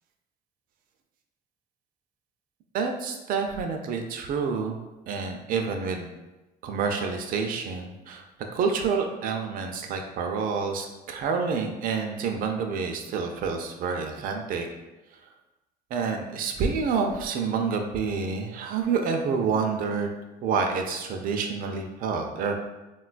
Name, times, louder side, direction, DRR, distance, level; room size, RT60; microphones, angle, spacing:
voice 1, 2.7-4.8 5.1-6.1 6.6-8.2 8.5-14.7 15.9-20.1 20.4-22.6, right 5 dB, 55° right, 3 dB, 0.4 m, -28 dB
3.7 x 2.2 x 2.4 m, 1.1 s
cardioid pair, 110°, 17 cm